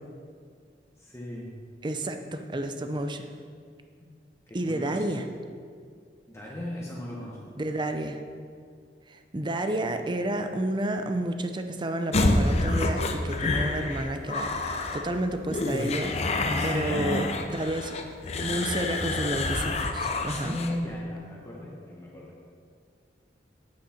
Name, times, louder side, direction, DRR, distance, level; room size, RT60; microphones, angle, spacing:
voice 1, 1.0-1.6 4.5-5.1 6.3-7.4 16.4-17.3 20.2-22.3, left 1 dB, 15° left, -4 dB, 1.1 m, -36 dB
voice 2, 1.8-3.3 4.5-5.3 7.6-8.2 9.1-14.5 14.9-16.1 16.6-17.9 18.3-20.6, right 1 dB, 25° right, 7 dB, 0.5 m, -30 dB
sound 1, 12.1-20.8, left 2 dB, 40° left, 0.6 m, -28 dB
8.5 x 7.9 x 4.3 m, 2.1 s
head